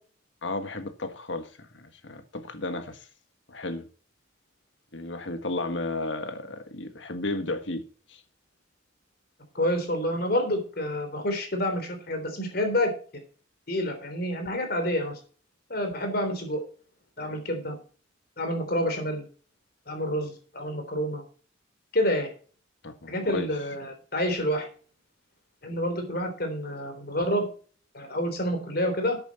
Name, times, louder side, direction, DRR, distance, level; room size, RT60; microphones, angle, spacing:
voice 1, 0.4-3.1 3.5-3.9 4.9-7.8 8.1-8.2 22.8-23.5, left 2 dB, 70° left, 1.5 m, -33 dB
voice 2, 9.6-12.9 13.7-15.2 15.7-16.6 17.2-17.8 18.4-19.2 19.9-21.2 21.9-22.3 23.1-24.7 25.6-27.5 27.9-29.2, equal, 50° left, 3.5 m, -28 dB
11.0 x 8.8 x 4.2 m
head